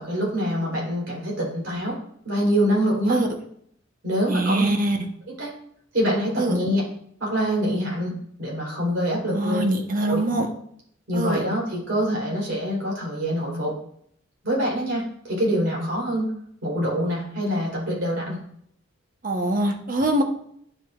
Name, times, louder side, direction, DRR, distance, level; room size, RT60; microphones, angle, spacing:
voice 1, 0.0-2.0 2.2-3.2 4.0-4.7 5.4-5.5 5.9-6.8 7.2-8.1 8.4-9.6 10.0-10.2 11.1-13.8 14.4-16.3 16.6-18.4, equal, 60° right, -3 dB, 3.5 m, -25 dB
voice 2, 4.3-5.0 6.4-6.6 9.3-10.5 11.1-11.4 19.2-20.2, right 1 dB, 40° right, 4 dB, 0.9 m, -23 dB
9.8 x 7.7 x 2.4 m, 0.67 s
head